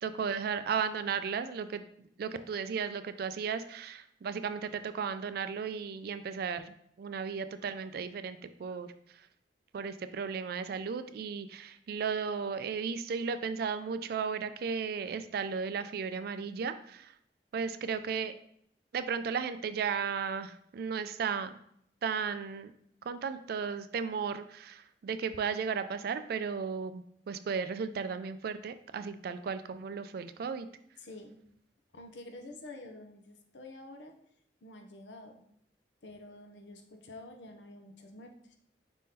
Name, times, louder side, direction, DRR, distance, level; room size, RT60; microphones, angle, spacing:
voice 1, 0.0-9.3 9.7-17.1 17.5-18.4 18.9-21.5 22.0-22.7 23.0-30.7, right 6 dB, 60° right, 11 dB, 0.3 m, -35 dB
voice 2, 31.0-31.4 31.9-34.2 34.6-35.4 36.0-38.6, left 2 dB, 90° left, 5 dB, 0.7 m, -48 dB
5.1 x 3.7 x 2.8 m, 0.68 s
head